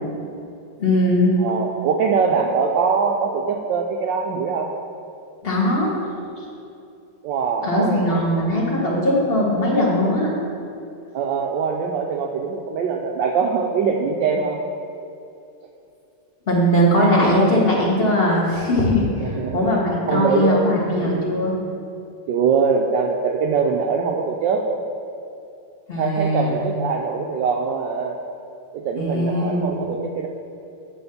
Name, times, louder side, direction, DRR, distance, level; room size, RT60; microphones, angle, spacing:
voice 1, 0.8-1.3 5.4-5.9 7.6-10.3 16.5-19.1 19.5-21.5 25.9-26.6 29.0-29.8, left 1 dB, 30° left, -4 dB, 1.6 m, -19 dB
voice 2, 1.4-4.7 7.2-8.2 11.1-14.6 19.2-19.7 20.1-20.6 21.0-21.1 22.3-24.7 26.0-28.2 28.7-30.3, right 5 dB, 70° right, 1 dB, 1.1 m, -22 dB
10.0 x 3.5 x 7.0 m, 2.6 s
omnidirectional pair, 2.3 m